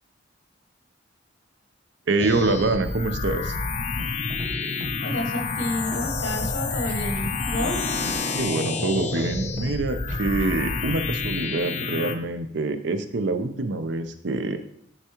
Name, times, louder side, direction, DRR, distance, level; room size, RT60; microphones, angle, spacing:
voice 1, 2.1-3.5 8.4-14.6, right 2 dB, 65° right, 9 dB, 0.6 m, -25 dB
sound 1, 2.2-12.2, left 4 dB, 35° left, 0.5 m, -29 dB
Scratching (performance technique), 4.0-4.1 4.3-4.5 4.8-5.2 5.9-6.5 6.8-7.3 7.5-7.8 8.0-8.5 9.2-9.7 10.1-10.5, equal, 40° right, 0.8 m, -36 dB
voice 2, 5.0-7.9, left 1 dB, 80° left, 3 dB, 1.1 m, -30 dB
9.9 x 3.5 x 3.0 m, 0.71 s
head